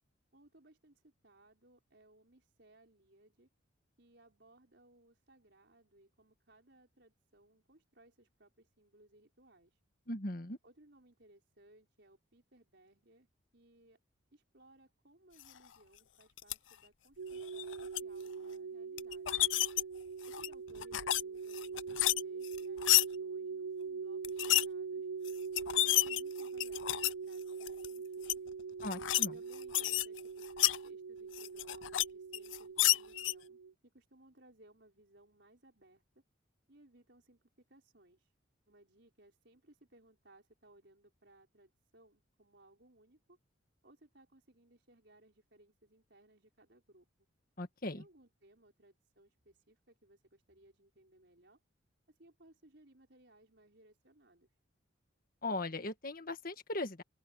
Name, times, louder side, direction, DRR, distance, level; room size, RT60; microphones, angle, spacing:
voice 1, 0.3-3.5 4.0-9.8 10.6-13.3 13.5-14.0 14.3-19.4 20.3-25.1 25.7-28.4 29.3-36.2 36.7-38.3 38.7-43.4 43.8-47.3 47.9-51.6 52.1-54.5, right 1 dB, 60° right, 5.2 m, -64 dB
voice 2, 10.1-10.6 28.8-29.3 47.6-48.0 55.4-57.0, left 2 dB, 45° left, 1.7 m, -38 dB
sound 1, 16.4-16.5 17.4-18.0 19.0-19.8 20.3-21.2 21.5-23.1 24.2-24.7 25.3-25.4 25.6-27.1 27.6-27.9 28.2-28.3 28.8-29.3 29.5-30.8 31.3-32.0 32.3-33.3, left 16 dB, 75° left, 0.5 m, -30 dB
sound 2, 17.2-33.7, right 5 dB, 80° right, 0.8 m, -43 dB
open air
head